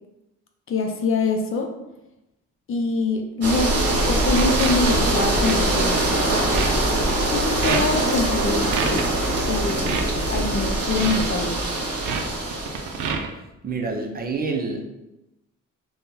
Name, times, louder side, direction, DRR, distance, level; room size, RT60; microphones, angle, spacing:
voice 1, 0.7-1.7 2.7-3.7 4.1-6.1 7.3-8.7 9.5-10.0 10.3-11.6, left 3 dB, 45° left, 3 dB, 0.6 m, -24 dB
sound 1, 3.4-13.1, right 1 dB, 55° right, 1.0 m, -23 dB
sound 2, 3.8-4.0 4.3-4.9 5.4-5.6 5.9-6.2 6.5-6.7 7.3-7.4 7.6-8.0 8.7-9.0 9.7-10.0 10.9-11.2 12.0-12.2 12.5-13.3, right 6 dB, 85° right, 0.5 m, -27 dB
voice 2, 13.6-14.9, right 4 dB, 30° right, 3 dB, 0.5 m, -27 dB
3.6 x 2.3 x 2.7 m, 0.92 s
cardioid pair, 90°, 30 cm